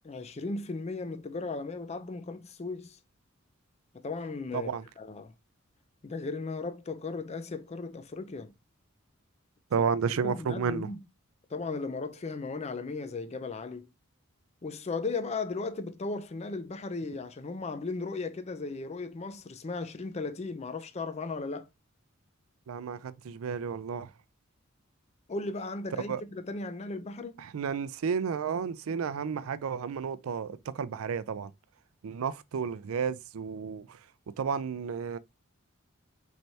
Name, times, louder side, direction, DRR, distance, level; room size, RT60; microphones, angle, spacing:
voice 1, 0.0-3.0 3.9-4.7 5.0-5.3 6.0-8.5 10.2-11.0 11.5-13.9 14.6-21.7 25.3-27.4, left 3 dB, 30° left, 0.4 m, -36 dB
voice 2, 4.5-4.8 9.7-10.9 22.7-24.1 26.1-26.2 27.4-31.5 32.0-34.0 34.4-35.2, right 6 dB, 85° right, 0.4 m, -32 dB
4.4 x 3.3 x 2.7 m
head